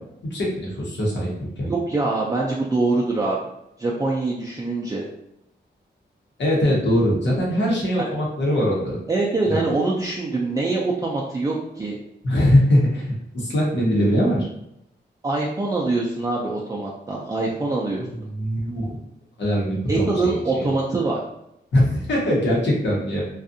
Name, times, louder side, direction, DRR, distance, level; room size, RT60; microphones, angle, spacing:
voice 1, 0.2-1.7 6.4-9.0 9.5-9.6 12.2-14.4 18.0-19.0 19.4-20.7 21.7-23.2, equal, 75° left, -4 dB, 1.0 m, -22 dB
voice 2, 1.7-3.4 3.8-5.0 9.1-12.0 15.2-18.0 19.9-21.2, right 3 dB, 20° right, -4 dB, 0.4 m, -24 dB
2.6 x 2.4 x 2.5 m, 0.81 s
wide cardioid pair, 105°, 19 cm